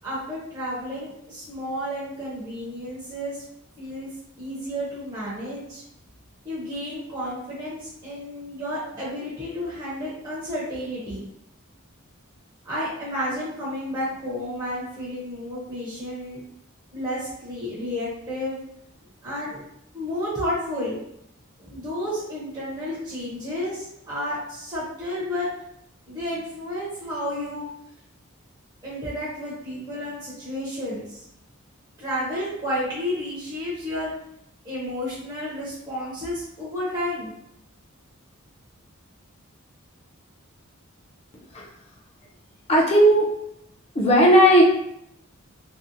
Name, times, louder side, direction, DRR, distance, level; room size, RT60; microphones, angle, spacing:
voice 1, 0.0-3.4 3.8-4.1 4.4-5.8 6.4-11.3 12.6-16.4 16.9-18.6 19.2-19.6 19.9-21.0 21.6-25.5 26.1-27.6 28.8-31.3 32.0-34.1 34.6-37.3, equal, 20° right, -8 dB, 0.6 m, -31 dB
voice 2, 41.3-41.7 42.7-43.3 43.9-44.6, equal, 30° left, -2 dB, 0.5 m, -16 dB
2.6 x 2.0 x 2.5 m, 0.77 s
head